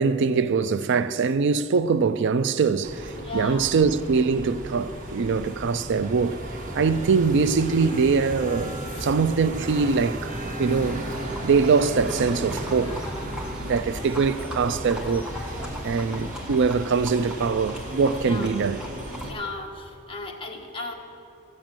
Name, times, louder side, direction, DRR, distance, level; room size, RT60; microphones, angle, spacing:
voice 1, 0.0-6.4 6.7-10.3 10.6-11.1 11.4-13.0 13.6-15.3 15.8-18.8, right 5 dB, 60° right, 0.4 m, -23 dB
sound 1, 2.8-19.3, right 1 dB, 40° right, 1.6 m, -35 dB
voice 2, 3.1-3.6 6.0-6.1 8.9-9.1 18.2-18.5 19.2-20.9, left 3 dB, 25° left, 1.5 m, -36 dB
Livestock farm animals working animals, 10.7-19.3, equal, 5° right, 1.6 m, -40 dB
14.0 x 7.6 x 8.9 m
head